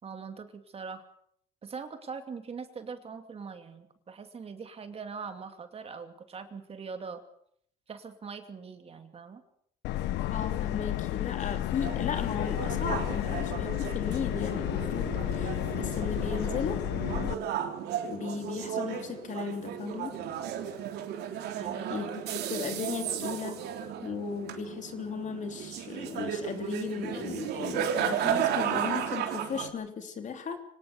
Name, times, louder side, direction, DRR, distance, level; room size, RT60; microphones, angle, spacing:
voice 1, 0.0-1.0 1.6-7.2 7.9-9.4 21.6-21.9, right 5 dB, 35° right, 7 dB, 2.6 m, -42 dB
Subway metro underground, 9.8-17.3, left 14 dB, 85° left, 1.1 m, -32 dB
voice 2, 10.3-16.8 18.1-20.2 21.9-23.6 24.0-30.6, left 6 dB, 45° left, 7 dB, 3.2 m, -36 dB
sound 1, 11.8-29.7, right 9 dB, 75° right, 3.4 m, -34 dB
24.5 x 18.5 x 6.8 m, 0.68 s
cardioid pair, 110°, 17 cm